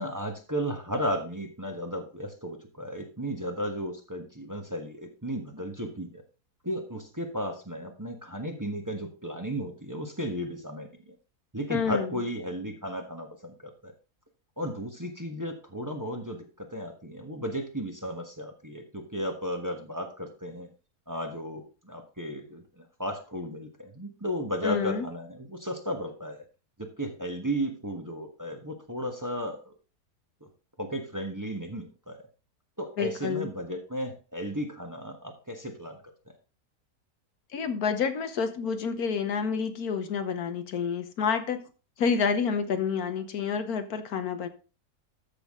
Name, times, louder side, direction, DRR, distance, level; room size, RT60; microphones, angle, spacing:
voice 1, 0.0-6.2 6.6-11.1 11.5-13.9 14.6-20.7 21.1-26.4 27.0-29.7 30.4-30.5 30.8-32.2 32.8-36.0, equal, 15° right, 3 dB, 1.2 m, -34 dB
voice 2, 11.7-12.2 24.6-25.1 33.0-33.5 37.5-41.7 42.0-44.5, left 6 dB, 80° left, 9 dB, 1.5 m, -29 dB
13.5 x 6.2 x 3.7 m, 0.34 s
omnidirectional pair, 1.6 m